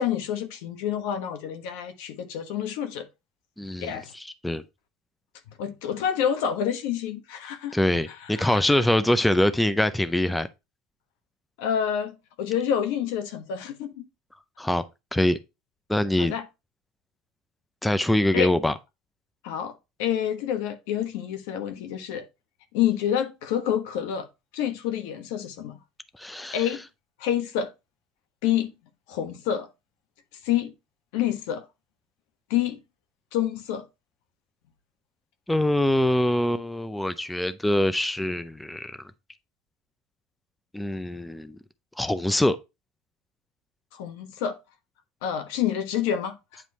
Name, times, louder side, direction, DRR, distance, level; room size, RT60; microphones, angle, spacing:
voice 1, 0.0-3.0 3.8-4.1 5.6-7.8 8.1-8.8 11.6-13.9 16.2-16.5 18.3-18.5 19.4-19.7 20.0-22.2 22.7-24.3 24.5-25.8 26.5-26.8 27.2-27.7 28.4-28.7 29.1-29.7 30.4-30.7 31.1-31.6 32.5-32.8 33.3-33.8 43.9-44.6 45.2-46.6, left 9 dB, 75° left, 1.2 m, -28 dB
voice 2, 3.6-4.6 7.7-10.5 14.6-14.8 15.1-15.4 15.9-16.3 17.8-18.7 26.2-26.6 35.5-39.0 40.7-41.6 42.0-42.6, left 1 dB, 5° left, 0.5 m, -24 dB
9.2 x 3.1 x 4.1 m
supercardioid pair, 110°, 0 cm